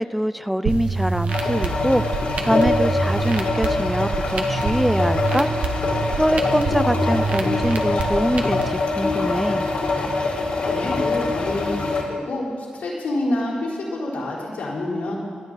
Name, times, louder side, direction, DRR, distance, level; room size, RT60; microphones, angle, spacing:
voice 1, 0.0-5.5 6.2-9.7, equal, ahead, 14 dB, 0.4 m, -24 dB
sound 1, 0.6-8.6, right 4 dB, 55° right, 1.2 m, -26 dB
sound 2, 1.3-12.0, left 3 dB, 50° left, 2.5 m, -24 dB
voice 2, 10.6-15.2, left 1 dB, 85° left, -6 dB, 4.4 m, -27 dB
25.0 x 9.4 x 4.1 m, 2.2 s
wide cardioid pair, 135°, 3 cm